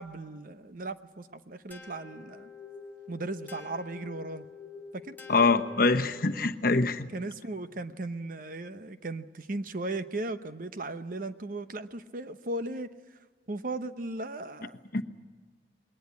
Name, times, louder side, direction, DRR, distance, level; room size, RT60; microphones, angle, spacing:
voice 1, 0.0-2.5 3.1-4.5 4.9-5.2 7.1-13.2 13.5-14.8, right 2 dB, 50° right, 11 dB, 0.9 m, -37 dB
sound 1, 1.7-6.5, left 4 dB, 10° left, 1.4 m, -47 dB
voice 2, 5.3-7.1 14.9-15.0, left 3 dB, 50° left, 7 dB, 1.0 m, -24 dB
21.0 x 19.0 x 9.7 m, 1.4 s
head